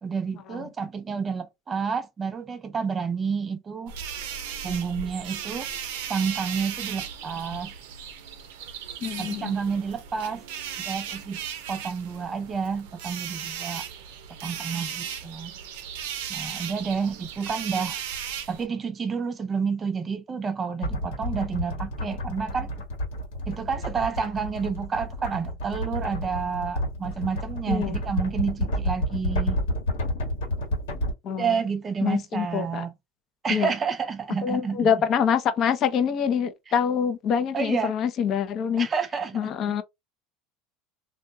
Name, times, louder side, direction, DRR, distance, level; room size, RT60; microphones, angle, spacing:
voice 1, 0.0-3.9 4.6-5.7 6.1-7.7 9.2-10.4 10.8-11.4 11.7-13.8 14.4-15.5 16.3-18.0 18.5-22.7 23.5-29.6 31.3-32.9 33.4-34.9 37.5-37.9 38.8-39.7, right 5 dB, 30° right, 0.5 m, -29 dB
sound 1, 3.9-18.6, right 8 dB, 80° right, 0.5 m, -36 dB
voice 2, 9.0-9.5 27.7-27.9 31.2-31.6 32.0-32.8 33.5-33.7 34.4-38.9 39.3-39.8, left 7 dB, 45° left, 0.5 m, -25 dB
sound 2, 20.8-31.1, left 1 dB, 85° left, 1.2 m, -30 dB
2.3 x 2.1 x 2.7 m
supercardioid pair, 105°, 0 cm